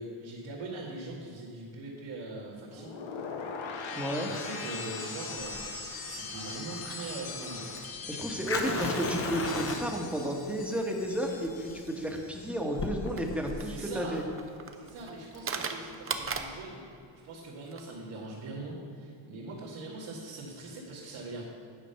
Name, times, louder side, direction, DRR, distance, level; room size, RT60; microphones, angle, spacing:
voice 1, 0.0-2.9 4.3-5.6 6.0-7.7 8.4-8.9 13.6-14.2 14.7-16.9 17.2-21.4, right 2 dB, 85° right, -8 dB, 1.9 m, -41 dB
sound 1, 2.7-12.8 13.1-13.5, left 5 dB, 65° left, 1.2 m, -41 dB
voice 2, 3.9-4.3 8.1-14.2, equal, 5° right, 1 dB, 1.2 m, -32 dB
sound 2, 4.3-16.8 17.0-17.1 17.3-17.8, right 5 dB, 25° right, 0.6 m, -42 dB
Fire, 5.4-16.4, left 3 dB, 30° left, 0.8 m, -38 dB
9.7 x 5.2 x 5.6 m, 2.6 s
cardioid pair, 100°, 49 cm